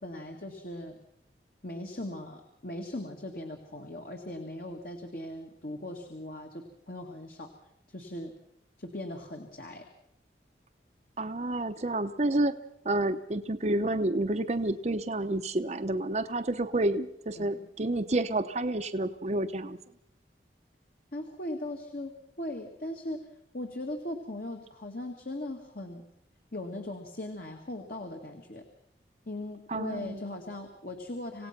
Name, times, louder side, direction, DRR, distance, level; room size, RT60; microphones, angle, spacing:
voice 1, 0.0-1.0 1.6-7.5 7.9-8.3 8.8-9.9 17.4-17.7 21.1-23.2 23.5-26.0 26.5-28.6 29.3-31.5, left 1 dB, 55° left, 4 dB, 2.0 m, -39 dB
voice 2, 11.2-12.5 12.8-19.8 29.7-30.2, right 2 dB, 40° right, 8 dB, 0.8 m, -29 dB
27.0 x 17.0 x 5.9 m, 0.77 s
head